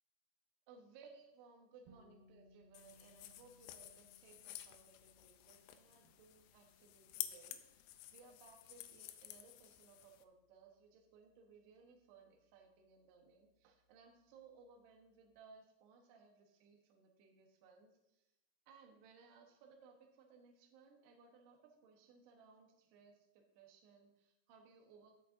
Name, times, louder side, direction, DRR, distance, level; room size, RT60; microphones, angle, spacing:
voice 1, 0.7-18.3 18.7-25.2, right 5 dB, 70° right, 2 dB, 2.9 m, -63 dB
sound 1, 1.9-13.7, left 1 dB, 90° right, 1.9 m, -71 dB
sound 2, 2.7-10.2, left 14 dB, 85° left, 2.8 m, -51 dB
17.5 x 6.4 x 2.7 m, 0.88 s
omnidirectional pair, 5.7 m